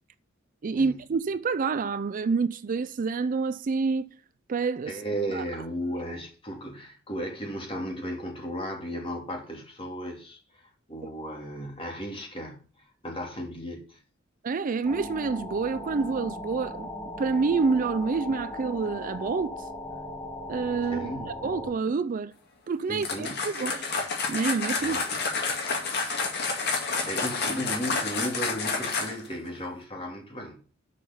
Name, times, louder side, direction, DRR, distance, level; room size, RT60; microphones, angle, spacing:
voice 1, 0.6-4.1 4.5-5.0 5.3-5.4 14.4-16.9 17.2-19.7 20.5-22.3 22.7-23.9 24.3-25.0, right 4 dB, 45° right, 0.4 m, -28 dB
voice 2, 4.9-14.0 20.9-21.4 22.9-23.5 24.8-25.0 27.1-30.6, equal, 30° left, 2.5 m, -35 dB
sound 1, 14.8-21.7, left 1 dB, 10° left, 2.0 m, -38 dB
sound 2, 23.0-29.3, left 4 dB, 55° left, 2.1 m, -29 dB
6.6 x 5.5 x 7.0 m
head